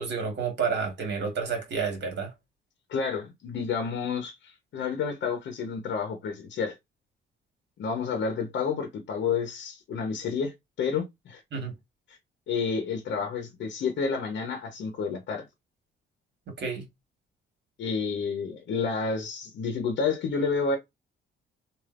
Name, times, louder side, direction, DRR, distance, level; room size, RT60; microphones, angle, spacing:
voice 1, 0.0-2.3 11.5-11.7 16.5-16.9, right 5 dB, 60° right, 1.6 m, -30 dB
voice 2, 2.9-6.7 7.8-11.4 12.5-15.4 17.8-20.8, left 5 dB, 65° left, 0.9 m, -30 dB
3.3 x 2.6 x 2.4 m
cardioid pair, 90°, 20 cm